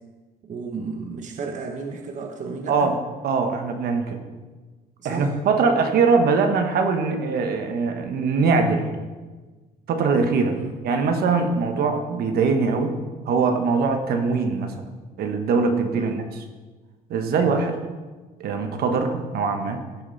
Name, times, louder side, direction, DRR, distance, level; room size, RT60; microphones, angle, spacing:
voice 1, 0.4-2.9 5.0-5.3 10.5-10.7 15.9-16.2, right 4 dB, 45° right, 4 dB, 1.0 m, -33 dB
voice 2, 3.2-4.2 5.0-8.8 9.9-10.5 10.8-12.9 13.2-14.7 15.2-16.2 17.1-17.8 18.4-19.8, right 4 dB, 70° right, 5 dB, 1.3 m, -22 dB
16.0 x 6.7 x 4.1 m, 1.3 s
cardioid pair, 110°, 17 cm